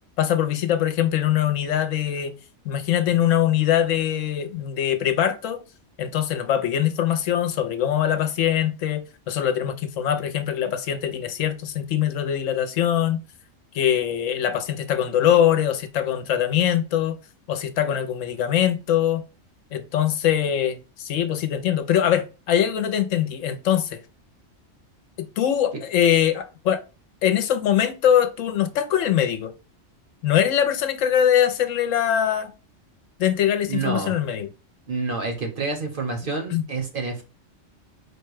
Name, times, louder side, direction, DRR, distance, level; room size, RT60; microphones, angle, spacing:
voice 1, 0.2-2.3 2.6-5.6 6.0-13.2 13.7-17.2 17.5-19.2 19.7-24.0 25.2-26.8 27.2-29.5 30.2-32.5 33.2-34.5 36.5-36.7, left 10 dB, 75° left, 0.9 m, -22 dB
voice 2, 33.7-34.1 34.9-37.2, right 4 dB, 50° right, 0.9 m, -28 dB
4.8 x 2.2 x 4.6 m
omnidirectional pair, 1.4 m